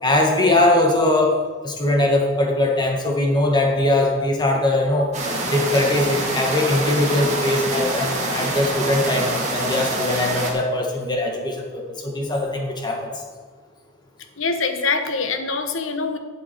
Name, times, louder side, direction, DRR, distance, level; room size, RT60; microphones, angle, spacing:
voice 1, 0.0-5.1 5.5-13.1, left 1 dB, 20° left, 1 dB, 1.6 m, -21 dB
sound 1, 5.1-10.5, right 2 dB, 35° right, 2.1 m, -25 dB
voice 2, 14.4-16.2, left 4 dB, 60° left, 7 dB, 1.1 m, -24 dB
12.5 x 7.7 x 4.4 m, 1.5 s
head